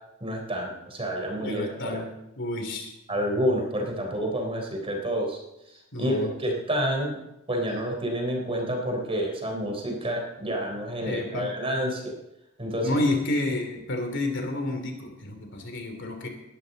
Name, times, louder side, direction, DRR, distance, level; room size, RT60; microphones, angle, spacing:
voice 1, 0.2-2.0 3.1-5.4 6.0-7.2 7.5-12.1 12.6-12.9, equal, 25° right, 1 dB, 3.7 m, -29 dB
voice 2, 1.4-2.9 5.9-6.3 11.0-11.5 12.8-16.3, left 2 dB, 60° left, 4 dB, 3.1 m, -30 dB
20.5 x 12.5 x 4.1 m, 0.89 s
head